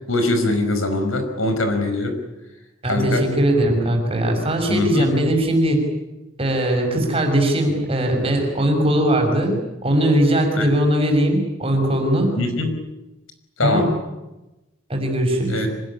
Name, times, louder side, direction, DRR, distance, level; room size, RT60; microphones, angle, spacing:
voice 1, 0.1-2.2 2.9-3.3 4.7-5.1 10.6-10.7 12.4-12.7 13.6-13.9 15.5-15.7, left 2 dB, 75° left, 7 dB, 5.2 m, -22 dB
voice 2, 2.8-5.9 6.4-12.3 13.6-13.9 14.9-15.6, right 1 dB, 25° right, 3 dB, 6.0 m, -20 dB
26.0 x 19.5 x 9.9 m, 1.0 s
head